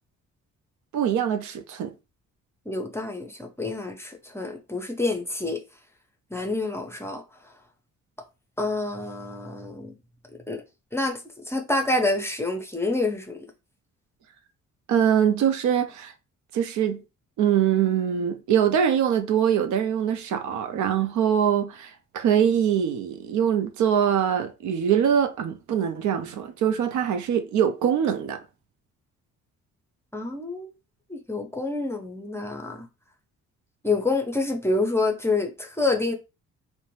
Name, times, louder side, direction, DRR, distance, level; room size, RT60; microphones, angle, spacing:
voice 1, 0.9-1.9 14.9-16.1 16.5-17.0 17.4-28.4, right 9 dB, 75° right, 0.5 m, -23 dB
voice 2, 2.7-5.6 6.3-7.2 8.6-9.9 10.5-10.6 10.9-13.4 30.1-30.7 31.1-32.9 33.8-36.1, left 2 dB, 10° left, 0.5 m, -27 dB
2.5 x 2.1 x 3.0 m
cardioid pair, 90°, 30 cm